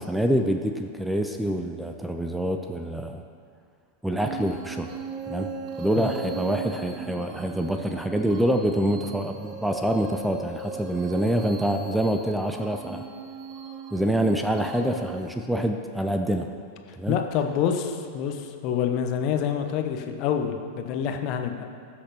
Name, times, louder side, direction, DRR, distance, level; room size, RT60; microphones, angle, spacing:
voice 1, 0.0-3.2 4.0-4.9 5.3-5.5 5.8-13.0 13.9-16.5 17.0-17.2, right 1 dB, 5° right, 5 dB, 0.5 m, -26 dB
sound 1, 4.2-15.3, right 6 dB, 35° right, 0.8 m, -38 dB
voice 2, 17.1-21.6, left 8 dB, 40° left, 5 dB, 0.9 m, -27 dB
18.0 x 6.4 x 3.0 m, 2.2 s
figure-of-eight pair, 90°, 0 cm